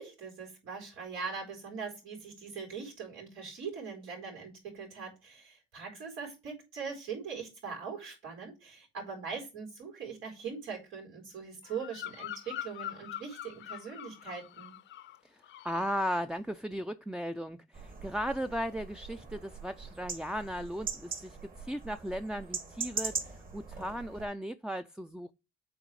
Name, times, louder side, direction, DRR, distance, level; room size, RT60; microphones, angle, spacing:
voice 1, 0.0-14.8, right 5 dB, 90° right, 4.3 m, -41 dB
Bird vocalization bird call bird song, 11.6-15.2 15.4-15.9, left 11 dB, 70° left, 0.6 m, -43 dB
voice 2, 15.6-25.3, equal, 5° right, 0.4 m, -36 dB
sound 1, 17.7-24.3, right 4 dB, 45° right, 2.2 m, -41 dB
7.9 x 4.1 x 4.7 m
cardioid pair, 90°, 20 cm